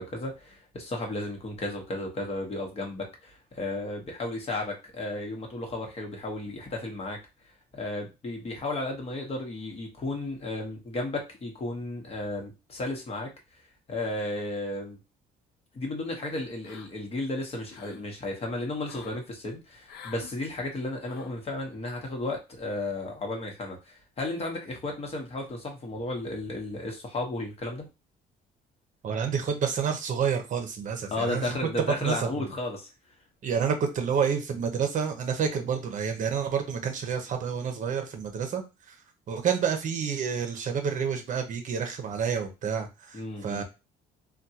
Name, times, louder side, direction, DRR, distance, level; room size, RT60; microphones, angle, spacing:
voice 1, 0.0-7.2 7.7-13.3 13.9-15.0 15.7-27.8 31.1-32.9 43.1-43.6, left 2 dB, 35° left, 1 dB, 1.0 m, -34 dB
sound 1, 16.6-17.2 17.5-18.1 18.8-19.2 19.9-20.3 21.0-21.4, left 7 dB, 80° left, 0.5 m, -48 dB
voice 2, 29.0-31.5 32.0-32.5 33.4-38.9 39.3-43.6, right 7 dB, 50° right, 5 dB, 0.7 m, -29 dB
3.4 x 2.3 x 2.8 m, 0.27 s
cardioid pair, 110°, 17 cm